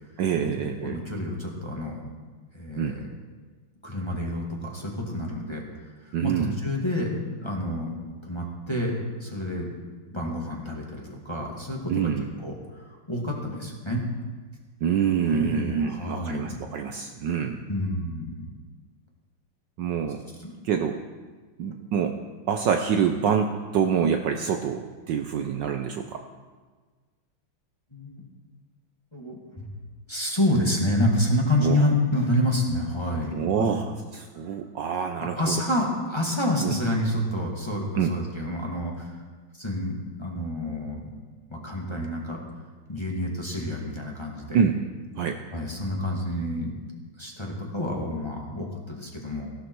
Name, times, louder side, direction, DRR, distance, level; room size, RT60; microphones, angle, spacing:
voice 1, 0.2-1.0 2.8-3.0 6.1-6.6 11.9-12.3 14.8-17.6 19.8-20.2 20.6-21.0 21.6-22.2 22.5-26.2 31.6-31.8 33.3-33.9 34.1-35.5 36.6-36.8 38.0-38.1 44.5-44.8 45.2-45.4, right 7 dB, 70° right, 5 dB, 1.2 m, -26 dB
voice 2, 0.8-2.1 2.5-3.1 3.8-5.6 6.0-9.7 10.1-12.0 12.4-14.0 15.3-16.6 17.7-18.5 20.4-20.5 27.9-28.2 29.1-29.4 30.1-33.7 35.4-39.2 39.5-41.0 41.5-42.5 42.9-44.6 45.5-46.7 47.2-49.5, left 1 dB, 15° left, -2 dB, 1.8 m, -28 dB
16.0 x 11.5 x 4.6 m, 1.4 s
omnidirectional pair, 2.3 m